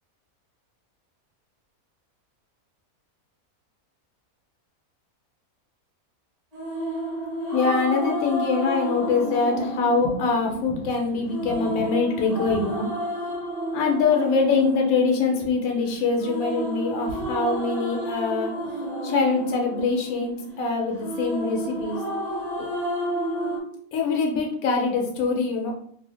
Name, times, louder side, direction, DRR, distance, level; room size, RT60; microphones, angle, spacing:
sound 1, 6.5-23.6, equal, 35° right, 0.7 m, -31 dB
voice 1, 7.5-12.9 13.7-18.5 19.0-22.0 22.6-22.7 23.9-25.7, left 4 dB, 75° left, 0 dB, 1.0 m, -24 dB
2.5 x 2.0 x 3.2 m, 0.64 s
omnidirectional pair, 1.5 m